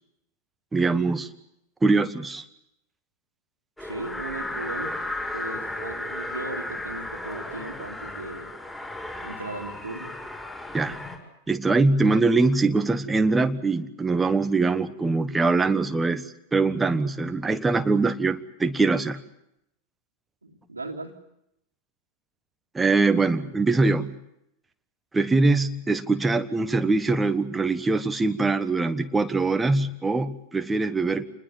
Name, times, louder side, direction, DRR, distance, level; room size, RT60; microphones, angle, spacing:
voice 1, 0.7-1.3 1.8-2.4 10.7-11.0 11.5-19.2 22.7-24.2 25.1-31.3, right 3 dB, 10° right, 9 dB, 1.3 m, -23 dB
sound 1, 3.8-11.2, left 2 dB, 10° left, 6.8 m, -34 dB
voice 2, 3.8-4.9 5.3-8.5 9.2-10.1 20.4-21.1, right 2 dB, 80° right, -3 dB, 2.4 m, -37 dB
28.5 x 20.5 x 7.3 m, 0.80 s
figure-of-eight pair, 90°, 0 cm